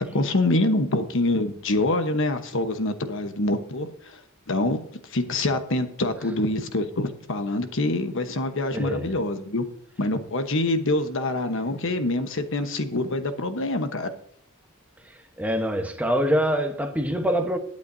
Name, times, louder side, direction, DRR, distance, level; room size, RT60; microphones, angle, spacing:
voice 1, 0.1-4.2 4.5-4.8 5.1-9.6 10.0-14.1, left 2 dB, 65° left, 1.1 m, -25 dB
voice 2, 8.7-9.1 15.4-17.6, equal, 5° right, 1.1 m, -24 dB
20.5 x 8.5 x 2.7 m
head